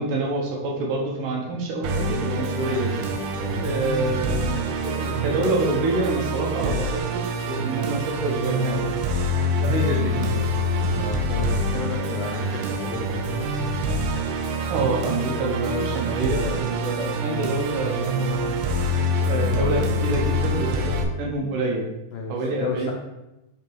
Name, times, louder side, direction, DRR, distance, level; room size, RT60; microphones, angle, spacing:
voice 1, 0.0-3.1 3.6-8.9 9.6-10.4 14.7-18.5 19.2-21.9 22.3-22.9, right 2 dB, 70° right, -2 dB, 2.1 m, -27 dB
Musical instrument, 1.8-21.0, equal, 85° right, 2.6 m, -26 dB
voice 2, 11.0-13.7 22.1-22.9, left 4 dB, 85° left, 0 dB, 1.8 m, -33 dB
8.3 x 3.0 x 4.5 m, 0.95 s
omnidirectional pair, 4.4 m